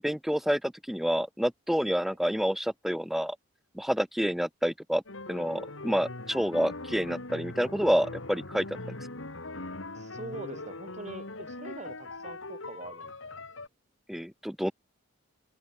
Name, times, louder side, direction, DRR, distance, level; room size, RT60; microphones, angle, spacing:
voice 1, 0.0-3.4 3.7-5.0 5.3-8.7 14.1-14.7, equal, ahead, 0.4 m, -28 dB
sound 1, 5.1-13.7, left 2 dB, 60° left, 2.4 m, -41 dB
voice 2, 9.9-13.7, right 2 dB, 30° right, 1.8 m, -44 dB
head